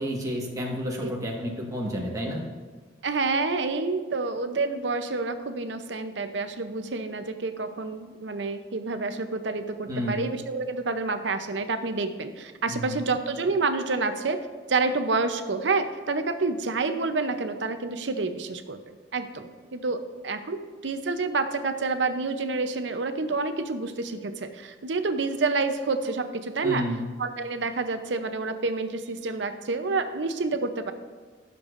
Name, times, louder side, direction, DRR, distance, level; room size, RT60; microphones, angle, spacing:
voice 1, 0.0-2.4 9.9-10.2 12.7-13.0 26.6-27.0, equal, 20° right, -3 dB, 1.5 m, -30 dB
voice 2, 3.0-14.4 14.7-18.8 19.1-26.8 27.2-30.9, right 3 dB, 75° right, 9 dB, 0.7 m, -28 dB
15.5 x 6.9 x 2.6 m, 1.5 s
head